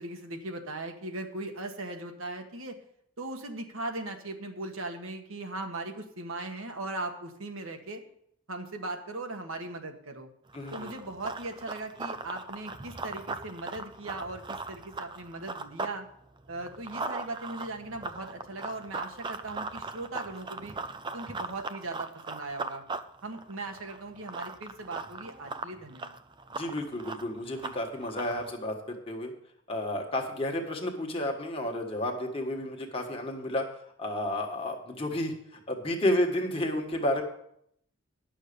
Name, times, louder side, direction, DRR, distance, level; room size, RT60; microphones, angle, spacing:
voice 1, 0.0-2.8 3.2-8.0 8.5-10.3 10.7-16.1 16.5-20.8 21.1-22.8 23.2-26.2, right 2 dB, 75° right, 4 dB, 1.5 m, -38 dB
voice 2, 10.5-10.9 26.5-29.3 29.7-33.6 34.0-37.2, left 1 dB, 25° left, 2 dB, 1.5 m, -31 dB
Run, 10.5-16.0 16.3-28.5, right 3 dB, 20° right, 0.4 m, -39 dB
11.0 x 6.5 x 6.8 m, 0.71 s
head